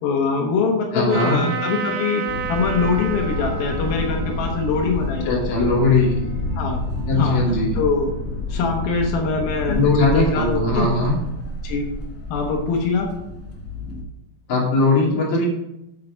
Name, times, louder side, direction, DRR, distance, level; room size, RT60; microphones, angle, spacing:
voice 1, 0.0-5.7 6.6-6.8 7.1-7.4 7.7-8.1 8.5-10.9 11.6-11.9 12.3-13.1, left 4 dB, 90° left, 1 dB, 3.1 m, -23 dB
voice 2, 0.9-1.5 5.3-6.1 7.1-7.7 9.7-11.2 14.5-15.5, left 3 dB, 50° left, -4 dB, 3.9 m, -19 dB
Trumpet, 1.1-6.6, right 5 dB, 85° right, 2.5 m, -31 dB
sound 1, 2.3-14.0, left 1 dB, 70° left, 0.8 m, -29 dB
7.8 x 7.6 x 5.0 m, 0.86 s
omnidirectional pair, 4.1 m